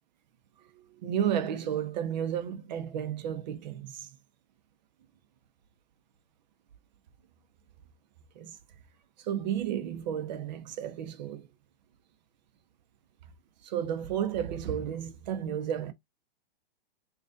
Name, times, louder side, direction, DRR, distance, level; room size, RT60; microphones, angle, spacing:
voice 1, 0.8-4.1 8.4-8.6 9.2-11.5 13.6-15.9, right 9 dB, 45° right, 0.7 m, -32 dB
5.1 x 2.4 x 2.4 m
hypercardioid pair, 130°, 30 cm